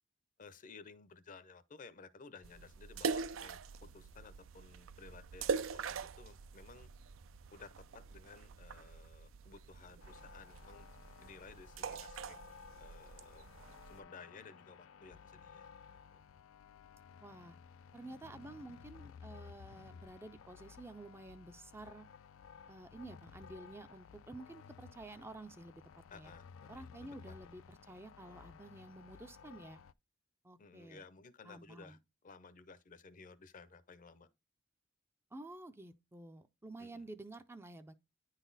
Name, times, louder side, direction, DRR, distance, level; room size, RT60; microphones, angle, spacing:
voice 1, 0.4-5.6 5.8-6.9 7.5-10.9 11.2-12.4 12.8-13.5 13.9-15.7 16.1-16.2 26.1-27.3 30.6-32.0 32.2-34.3 36.8-37.0, left 4 dB, 40° left, 0.6 m, -56 dB
sound 1, 2.4-14.0, right 5 dB, 85° right, 0.5 m, -43 dB
sound 2, 10.0-29.9, left 6 dB, 90° left, 0.3 m, -56 dB
voice 2, 17.2-17.6 17.9-22.1 22.7-25.8 26.1-26.3 26.7-29.8 30.4-31.0 31.4-32.0 35.3-37.9, right 2 dB, 10° right, 0.4 m, -51 dB
9.8 x 4.1 x 3.9 m
head